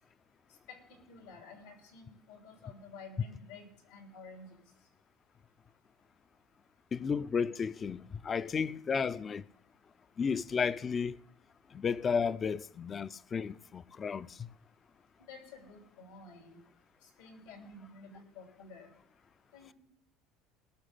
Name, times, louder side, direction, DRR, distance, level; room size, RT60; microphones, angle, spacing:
voice 1, 1.1-4.6 15.2-16.6 17.0-18.9 19.5-19.7, left 3 dB, 90° left, 3.2 m, -51 dB
voice 2, 6.9-9.4 10.2-11.2 11.7-14.5, left 6 dB, 30° left, 0.4 m, -33 dB
19.0 x 6.5 x 5.1 m
supercardioid pair, 110°, 0 cm